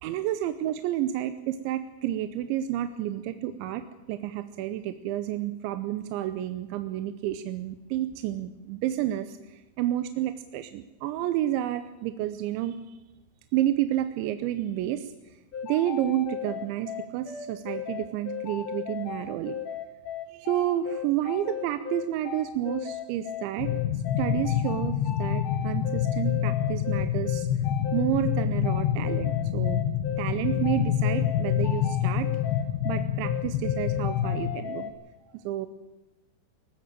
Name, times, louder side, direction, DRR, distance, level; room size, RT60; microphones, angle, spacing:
voice 1, 0.0-13.0 13.5-15.1 15.6-19.5 20.3-27.5 27.9-29.8 30.2-32.3 32.8-34.9 35.3-35.7, right 12 dB, 80° right, 10 dB, 3.0 m, -30 dB
sound 1, 15.5-34.9, left 9 dB, 50° left, 3.1 m, -36 dB
sound 2, 23.6-34.6, left 10 dB, 75° left, 2.9 m, -27 dB
19.5 x 15.5 x 8.9 m, 1.2 s
omnidirectional pair, 5.6 m